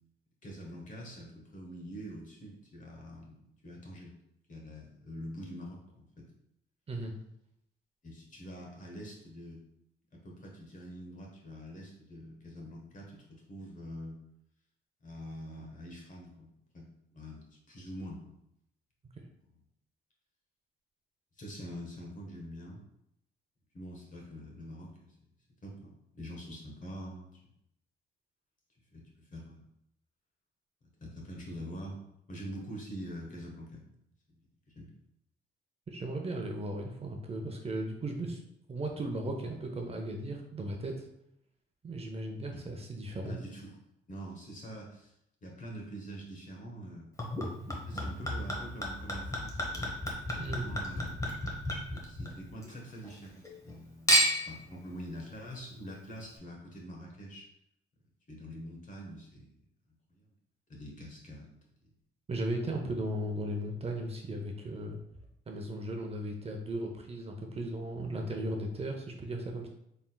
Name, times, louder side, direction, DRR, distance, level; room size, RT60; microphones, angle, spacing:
voice 1, 0.4-4.1 4.5-6.2 8.0-9.6 10.1-14.2 15.0-18.3 19.5-19.6 21.4-22.8 23.7-25.1 25.6-27.4 28.9-29.7 31.0-32.0 32.3-33.9 34.7-34.9 42.5-42.6 43.2-43.8 44.1-45.1 45.4-47.1 47.9-49.9 50.3-51.2 51.9-57.5 58.3-59.5 60.1-60.3 60.7-61.5, equal, 40° left, -1 dB, 1.2 m, -45 dB
voice 2, 35.9-38.4 38.7-41.1 41.8-43.4 50.4-50.7 62.3-65.0 65.5-69.7, right 1 dB, 30° right, 2 dB, 0.6 m, -36 dB
Chink clink / Liquid, 47.2-52.7 53.0-53.7 54.1-54.6 55.3-55.4, equal, 15° left, 1.0 m, -32 dB
4.3 x 3.6 x 2.3 m, 0.78 s
cardioid pair, 90°, 20 cm